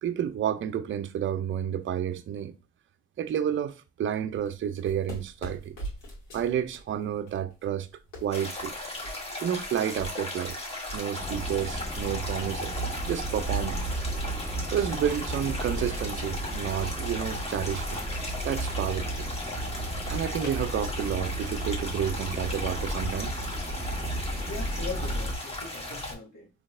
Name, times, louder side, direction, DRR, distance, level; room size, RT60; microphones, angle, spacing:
voice 1, 0.0-2.5 3.2-5.8 6.3-7.9 8.2-8.7 9.4-10.6 10.9-12.7 13.1-13.8 14.7-18.0 18.4-19.3 20.1-23.3, right 9 dB, 40° right, 0.4 m, -30 dB
sound 1, 4.3-23.4, equal, 80° left, 1.7 m, -47 dB
sound 2, 8.3-26.1, left 1 dB, 20° left, 1.1 m, -37 dB
sound 3, 11.2-25.4, right 1 dB, 10° right, 1.6 m, -34 dB
voice 2, 24.4-26.5, left 3 dB, 55° left, 1.8 m, -40 dB
3.9 x 3.0 x 2.5 m
cardioid pair, 90°, 30 cm